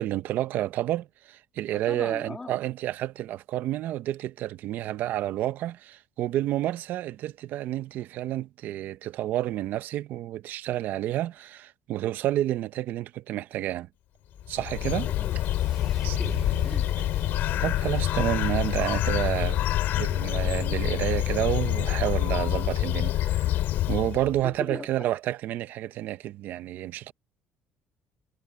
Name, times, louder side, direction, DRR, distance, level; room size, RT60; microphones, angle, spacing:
voice 1, 0.0-13.9 14.5-15.1 16.0-16.2 17.6-19.6 19.9-23.6 23.9-27.1, right 13 dB, 60° right, 0.8 m, -30 dB
voice 2, 1.7-2.6 15.0-15.4 15.7-16.8 24.4-25.1, left 3 dB, 15° left, 2.5 m, -40 dB
Bird, 14.4-24.4, left 14 dB, 65° left, 3.2 m, -27 dB
sound 1, 14.4-20.5, right 2 dB, 10° right, 3.5 m, -42 dB
cardioid pair, 155°, 4 cm